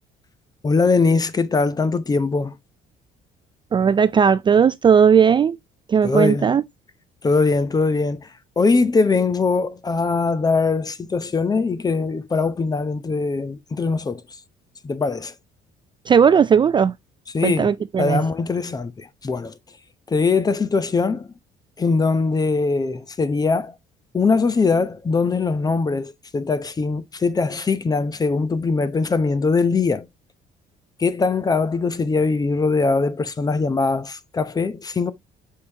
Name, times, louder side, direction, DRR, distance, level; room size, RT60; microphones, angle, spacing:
voice 1, 0.6-2.6 6.0-6.6 7.2-8.3 8.6-14.2 14.8-15.3 17.3-17.7 18.0-19.5 20.1-21.3 21.8-23.7 24.1-30.1 31.0-35.1, left 4 dB, 20° left, 0.7 m, -21 dB
voice 2, 3.7-5.6 5.9-6.6 16.1-16.9 17.4-18.2, right 7 dB, 30° right, 0.3 m, -16 dB
6.5 x 5.3 x 2.9 m
cardioid pair, 110°, 17 cm